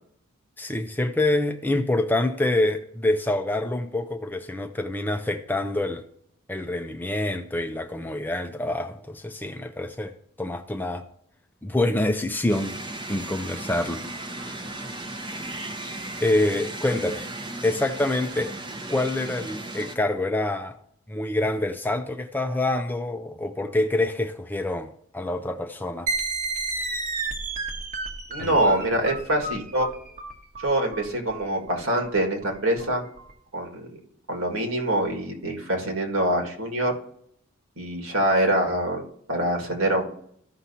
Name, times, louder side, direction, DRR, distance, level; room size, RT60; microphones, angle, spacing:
voice 1, 0.6-6.0 6.5-10.1 10.4-11.0 11.6-12.7 13.1-14.0 14.3-14.6 16.2-17.3 17.6-18.5 18.9-20.8 21.1-26.1 28.4-28.9, left 2 dB, 10° left, 0.5 m, -26 dB
sound 1, 12.5-20.0, right 2 dB, 20° right, 0.7 m, -36 dB
sound 2, 26.1-33.3, right 3 dB, 40° right, 1.1 m, -32 dB
voice 2, 28.3-29.9 30.6-33.0 33.5-34.0 34.3-36.9 37.8-40.0, right 1 dB, 70° right, 1.9 m, -25 dB
14.5 x 5.8 x 2.8 m
head